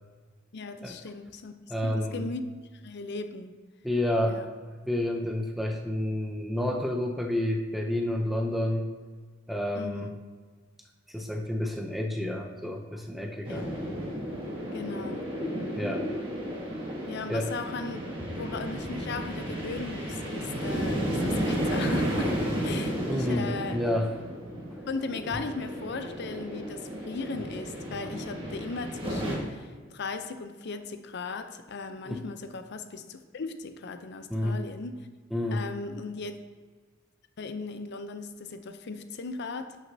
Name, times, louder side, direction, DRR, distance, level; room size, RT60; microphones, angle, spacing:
voice 1, 0.5-1.5 1.8-2.5 2.8-3.5 4.3-4.5 9.7-10.1 13.5-13.6 14.7-15.3 17.1-18.0 18.3-23.8 24.9-35.1 35.5-36.4 37.4-39.8, left 4 dB, 55° left, 9 dB, 0.6 m, -37 dB
voice 2, 1.7-2.3 3.8-4.4 4.9-8.9 9.5-10.1 11.1-13.7 15.8-16.1 17.3-17.5 23.1-24.1 32.1-32.2 34.3-34.6 35.3-35.7, left 1 dB, ahead, 2 dB, 0.5 m, -29 dB
sound 1, 13.4-29.4, equal, 25° right, 1.6 m, -33 dB
11.0 x 6.1 x 2.7 m, 1.5 s
head